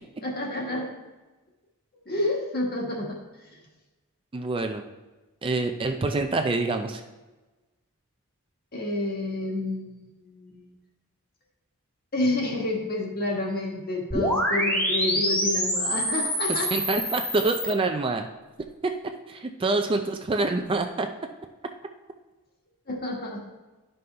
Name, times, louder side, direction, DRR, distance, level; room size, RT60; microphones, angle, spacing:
voice 1, 0.2-0.9 2.0-3.2 3.5-3.6 8.7-10.7 12.1-16.7 22.9-23.4, left 2 dB, 45° left, -1 dB, 1.6 m, -29 dB
voice 2, 4.3-4.9 5.4-7.0 16.7-18.3 18.8-18.9 19.3-21.1, right 3 dB, 25° right, 5 dB, 0.4 m, -26 dB
sound 1, 14.1-17.7, equal, 10° left, 1.2 m, -26 dB
11.0 x 5.4 x 3.3 m, 1.2 s
head